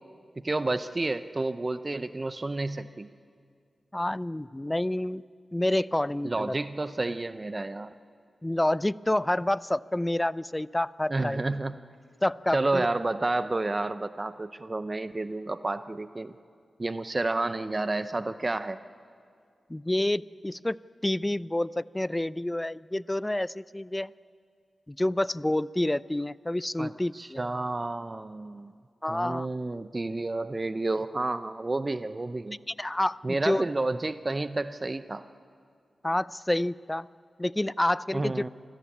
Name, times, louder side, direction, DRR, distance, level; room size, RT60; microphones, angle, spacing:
voice 1, 0.4-3.1 6.2-7.9 11.1-11.8 12.5-16.3 16.8-18.8 26.8-28.8 29.1-32.6 33.2-35.2 38.1-38.5, right 2 dB, 35° right, 12 dB, 0.7 m, -30 dB
voice 2, 3.9-5.2 5.5-6.5 8.4-11.4 12.2-12.9 19.7-20.8 21.0-24.1 24.9-27.4 29.0-29.5 32.8-33.6 36.0-37.1 37.4-38.4, left 1 dB, 20° left, 19 dB, 0.5 m, -28 dB
24.5 x 14.5 x 8.5 m, 2.2 s
cardioid pair, 40°, 0 cm